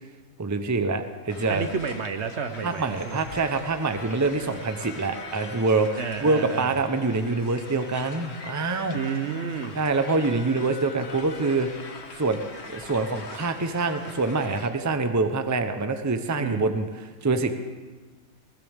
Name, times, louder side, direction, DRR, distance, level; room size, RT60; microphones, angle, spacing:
voice 1, 0.4-1.7 2.6-5.9 6.2-9.0 9.8-11.7 12.2-12.4 12.6-17.6, right 3 dB, 15° right, 7 dB, 0.7 m, -25 dB
sound 1, 1.3-14.7, left 3 dB, 50° left, 1.6 m, -42 dB
voice 2, 1.5-3.2 6.0-6.8 8.9-9.8 16.4-16.8, right 6 dB, 55° right, 8 dB, 1.0 m, -31 dB
20.5 x 19.5 x 3.6 m, 1.4 s
omnidirectional pair, 1.5 m